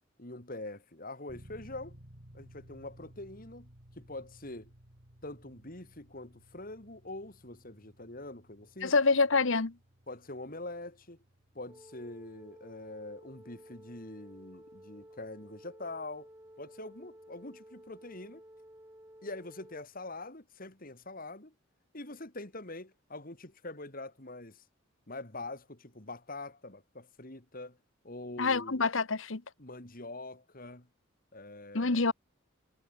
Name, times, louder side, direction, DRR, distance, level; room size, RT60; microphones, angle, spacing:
voice 1, 0.2-2.0 2.3-3.7 4.0-4.7 5.2-8.9 10.1-11.2 11.5-16.3 16.6-18.4 19.2-21.5 21.9-24.6 25.1-27.8 28.0-28.8 29.6-30.9 31.3-32.1, left 2 dB, 45° left, 3.2 m, -44 dB
sound 1, 1.3-18.0, equal, 50° right, 3.8 m, -59 dB
voice 2, 8.8-9.7 28.4-29.4 31.7-32.1, left 4 dB, 70° left, 1.3 m, -26 dB
sound 2, 11.7-19.8, right 1 dB, 15° right, 3.5 m, -54 dB
head